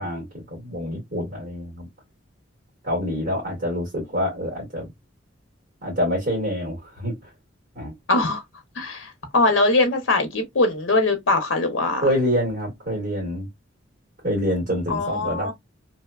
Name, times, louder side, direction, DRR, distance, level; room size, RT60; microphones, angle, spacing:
voice 1, 0.0-1.9 2.8-4.9 5.8-7.3 7.7-8.0 12.0-13.5 14.2-15.5, equal, 45° right, 1.5 m, -26 dB
voice 2, 8.1-8.4 8.8-12.0 14.9-15.5, left 2 dB, 80° left, 0.7 m, -21 dB
2.7 x 2.1 x 2.3 m
head